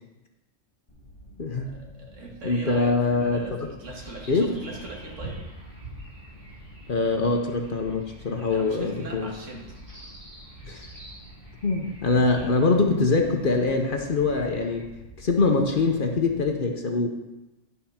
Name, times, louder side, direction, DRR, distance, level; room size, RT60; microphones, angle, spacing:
sound 1, 0.9-16.5, equal, 25° left, 1.2 m, -48 dB
voice 1, 1.5-5.4 8.5-9.8, right 2 dB, 75° right, -1 dB, 2.0 m, -41 dB
voice 2, 2.4-3.5 4.3-4.5 6.9-9.3 10.6-10.8 11.6-14.9 15.2-17.1, left 3 dB, 50° left, 3 dB, 0.9 m, -23 dB
sound 2, 3.9-14.8, right 1 dB, 35° right, 3.0 m, -46 dB
10.5 x 4.1 x 5.7 m, 1.0 s
omnidirectional pair, 1.3 m